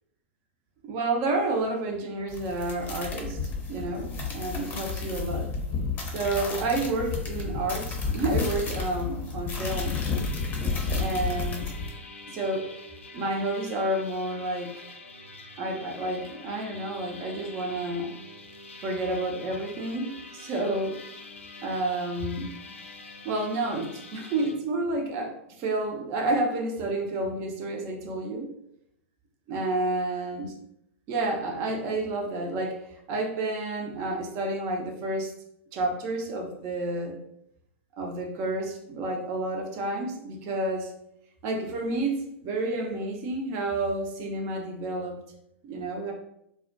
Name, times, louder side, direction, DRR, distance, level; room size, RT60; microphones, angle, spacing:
voice 1, 0.8-3.4 3.7-5.5 6.0-10.0 11.0-11.7 12.3-12.7 13.1-14.9 15.6-18.1 18.8-21.0 21.6-22.5 23.2-28.5 29.5-30.5 31.1-35.3 35.7-37.2 38.0-40.9 41.4-45.2 45.6-46.1, right 2 dB, 40° right, 2 dB, 0.5 m, -30 dB
sound 1, 2.3-11.9, left 4 dB, 25° left, 0.6 m, -31 dB
sound 2, 9.6-24.5, left 3 dB, 85° left, 0.4 m, -45 dB
2.4 x 2.1 x 2.5 m, 0.76 s
figure-of-eight pair, 100°, 7 cm